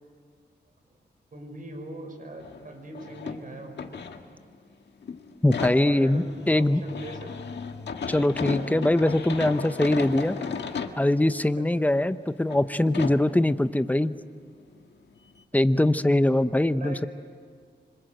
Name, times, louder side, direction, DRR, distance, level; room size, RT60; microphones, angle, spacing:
voice 1, 1.3-3.9 5.9-7.5 8.1-8.4 11.6-12.0 15.7-15.9 16.8-17.1, right 2 dB, 50° right, 4 dB, 5.7 m, -41 dB
sound 1, 2.4-2.7 2.9-4.7 5.0-11.0 11.6-11.7 12.4-12.6 12.9-13.3 14.9-15.0 15.4-15.5, left 5 dB, 85° left, 1.7 m, -34 dB
voice 2, 5.4-6.8 8.1-10.4 11.0-14.2 15.5-17.1, left 1 dB, 10° left, 12 dB, 0.8 m, -22 dB
26.0 x 25.5 x 7.9 m, 2.1 s
wide cardioid pair, 100°, 18 cm